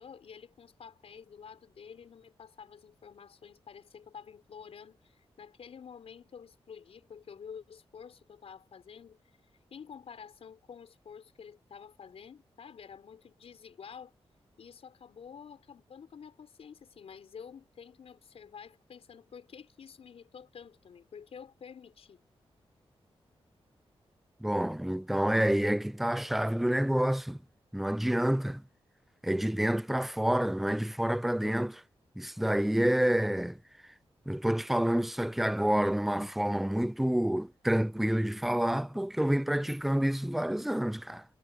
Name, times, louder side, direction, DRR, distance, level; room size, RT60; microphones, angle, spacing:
voice 1, 0.0-9.2 9.7-14.1 14.6-22.2, left 7 dB, 70° left, 6.0 m, -49 dB
voice 2, 24.4-27.4 27.7-28.6 29.2-31.8 32.2-33.6 34.3-41.2, right 1 dB, ahead, 0.3 m, -28 dB
wide cardioid pair, 150°, 10 cm